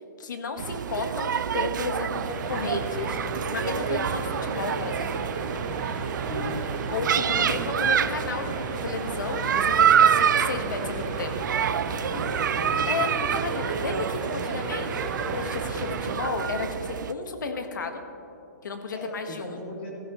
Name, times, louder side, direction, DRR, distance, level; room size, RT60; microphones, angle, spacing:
voice 1, 0.2-3.2 3.5-5.2 6.9-11.4 12.9-18.0 18.6-19.6, left 4 dB, 85° left, 6 dB, 1.5 m, -33 dB
sound 1, 0.6-17.1, right 8 dB, 85° right, 0.5 m, -27 dB
sound 2, 2.1-16.2, right 3 dB, 15° right, 0.9 m, -34 dB
voice 2, 6.3-7.4 12.1-12.9 18.9-19.9, left 2 dB, 35° left, -4 dB, 2.4 m, -38 dB
14.5 x 14.5 x 3.2 m, 2.7 s
hypercardioid pair, 175°, 10 cm